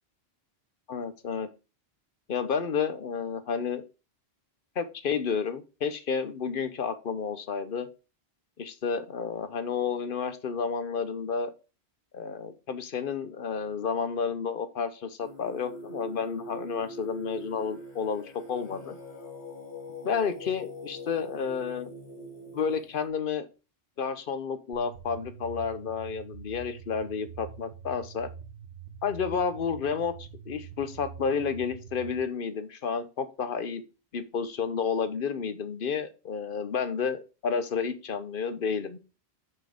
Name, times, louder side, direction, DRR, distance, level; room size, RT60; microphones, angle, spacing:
voice 1, 0.9-1.5 2.3-3.8 4.8-7.9 8.6-11.5 12.1-19.0 20.0-21.9 22.5-23.5 24.0-28.3 29.0-33.8 34.1-39.0, left 6 dB, 55° left, 12 dB, 0.9 m, -31 dB
Singing, 15.2-23.1, equal, 80° left, 3.0 m, -43 dB
sound 1, 24.7-32.1, right 7 dB, 75° right, 1.5 m, -45 dB
6.5 x 4.5 x 4.9 m, 0.31 s
omnidirectional pair, 1.1 m